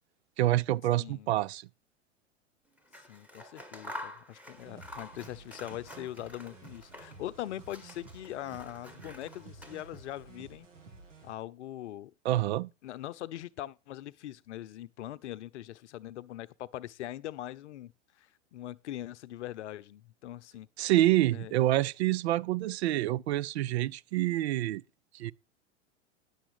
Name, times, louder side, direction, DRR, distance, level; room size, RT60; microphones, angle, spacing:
voice 1, 0.4-1.7 12.2-12.7 20.8-24.8 25.1-25.3, right 15 dB, 60° right, 0.5 m, -27 dB
voice 2, 1.0-1.3 3.1-10.7 11.2-12.1 12.8-17.9 18.2-20.7 21.3-21.5, left 13 dB, 65° left, 0.7 m, -42 dB
Scissors, 2.8-7.3 7.6-10.2, left 1 dB, 5° right, 1.7 m, -48 dB
sound 1, 4.6-11.3, right 3 dB, 75° right, 2.6 m, -52 dB
10.5 x 7.2 x 4.8 m
hypercardioid pair, 95°, 37 cm